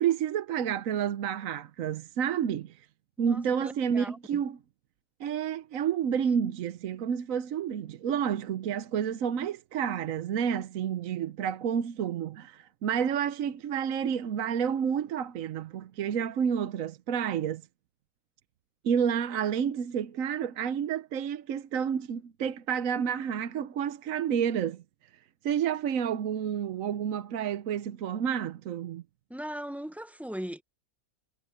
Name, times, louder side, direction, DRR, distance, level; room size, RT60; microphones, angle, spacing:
voice 1, 0.0-2.9 3.2-4.6 5.2-17.6 18.8-24.8 25.4-29.0, right 8 dB, 60° right, 1.1 m, -30 dB
voice 2, 3.2-4.2 29.3-30.6, equal, ahead, 0.6 m, -39 dB
omnidirectional pair, 1.7 m